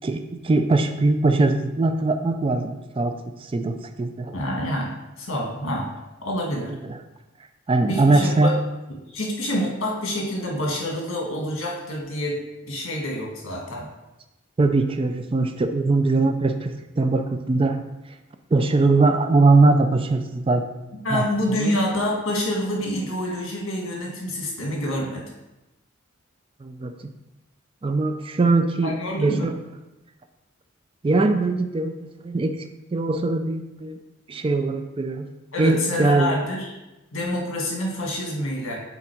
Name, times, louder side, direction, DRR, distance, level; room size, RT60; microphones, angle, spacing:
voice 1, 0.0-3.1 3.4-4.3 5.7-5.8 6.9-7.0 7.7-8.5 14.6-17.8 18.5-20.7 21.1-21.2 21.6-21.8 26.6-26.9 27.8-29.6 31.0-31.9 32.2-32.6 32.9-34.0 34.3-35.3 35.6-36.4, right 3 dB, 25° right, 7 dB, 0.3 m, -21 dB
voice 2, 4.3-5.9 6.2-6.7 7.9-8.5 9.1-12.4 12.7-13.9 21.0-25.2 28.8-29.4 35.5-36.7 37.1-38.8, left 1 dB, 75° left, -1 dB, 1.5 m, -27 dB
6.0 x 4.0 x 4.5 m, 1.0 s
head